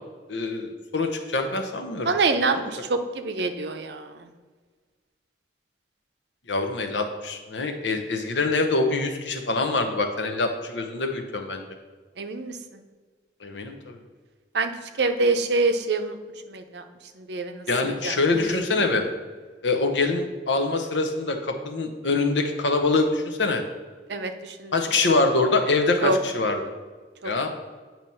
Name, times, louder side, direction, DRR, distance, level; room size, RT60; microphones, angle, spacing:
voice 1, 0.3-2.1 2.5-2.7 6.5-11.6 13.4-14.0 17.7-19.0 19.6-23.6 24.7-26.6 27.2-27.5, left 3 dB, 80° left, 5 dB, 0.9 m, -24 dB
voice 2, 2.1-4.3 12.2-12.8 14.5-14.7 15.0-16.2 16.5-16.8 17.2-18.2 24.1-24.7 26.0-26.2 27.2-27.3, right 3 dB, 65° right, 7 dB, 0.6 m, -26 dB
8.9 x 3.0 x 5.5 m, 1.4 s
head